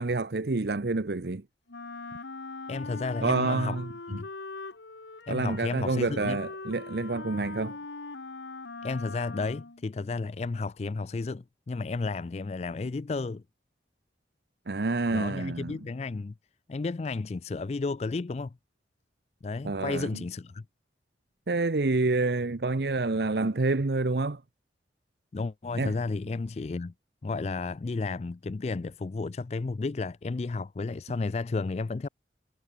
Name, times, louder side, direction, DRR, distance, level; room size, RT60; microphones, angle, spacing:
voice 1, 0.0-1.4 3.2-4.2 5.3-7.8 14.7-15.8 19.6-20.2 21.5-24.4 25.8-26.0, right 3 dB, 70° right, 0.8 m, -28 dB
Wind instrument woodwind instrument, 1.7-9.8, left 3 dB, 90° left, 1.5 m, -41 dB
voice 2, 2.7-3.8 4.1-4.3 5.3-6.4 8.8-13.4 15.1-16.3 16.7-18.5 19.4-20.6 25.3-26.9 27.2-32.1, left 3 dB, 35° left, 0.4 m, -32 dB
head